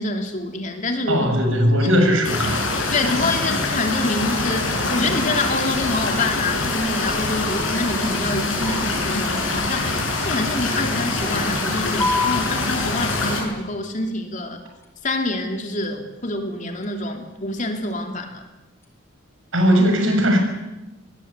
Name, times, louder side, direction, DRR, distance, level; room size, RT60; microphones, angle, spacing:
voice 1, 0.0-1.3 1.8-1.9 2.9-14.6 15.0-18.4, left 2 dB, 35° left, 4 dB, 3.1 m, -26 dB
voice 2, 1.1-2.6 19.5-20.4, equal, 75° right, 4 dB, 6.4 m, -18 dB
sound 1, 2.2-13.4, left 3 dB, 75° left, 7.5 m, -24 dB
sound 2, 12.0-19.0, left 3 dB, 15° left, 3.8 m, -33 dB
25.0 x 20.5 x 8.3 m, 0.99 s
head